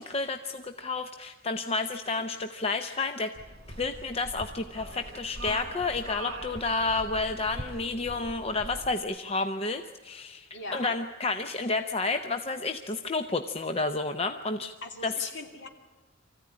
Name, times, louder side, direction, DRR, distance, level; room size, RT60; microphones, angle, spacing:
voice 1, 0.0-3.3 3.8-14.7 15.0-15.1, left 3 dB, 30° left, 7 dB, 0.7 m, -30 dB
sound 1, 3.4-9.0, right 1 dB, 55° right, 3.2 m, -42 dB
voice 2, 10.5-10.9 14.8-15.7, left 2 dB, 60° left, 3 dB, 2.6 m, -40 dB
24.0 x 15.0 x 9.8 m, 1.3 s
head